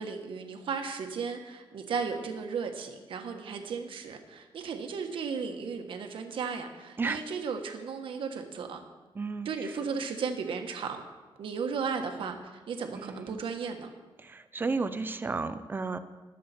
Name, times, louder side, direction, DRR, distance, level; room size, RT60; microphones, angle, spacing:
voice 1, 0.0-8.8 9.4-11.0 11.4-13.9, right 5 dB, 65° right, 5 dB, 1.4 m, -35 dB
voice 2, 9.1-9.7 12.9-13.4 14.2-16.0, right 4 dB, 20° right, 11 dB, 0.5 m, -33 dB
20.5 x 7.5 x 4.3 m, 1.3 s
wide cardioid pair, 175°, 9 cm